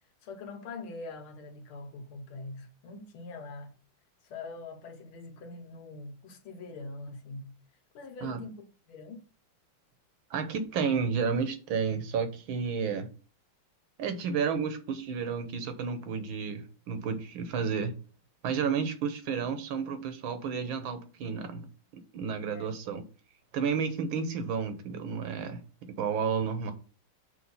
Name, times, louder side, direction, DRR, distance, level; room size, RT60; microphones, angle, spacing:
voice 1, 0.2-3.7 4.2-7.5 7.9-9.2 14.3-14.4 18.7-18.9 22.5-22.7, left 3 dB, 85° left, 1.9 m, -43 dB
voice 2, 10.3-13.1 14.0-17.9 18.4-21.7 22.1-23.0 23.5-25.6 25.9-26.7, right 6 dB, 75° right, 1.6 m, -31 dB
5.9 x 3.4 x 5.5 m
omnidirectional pair, 2.3 m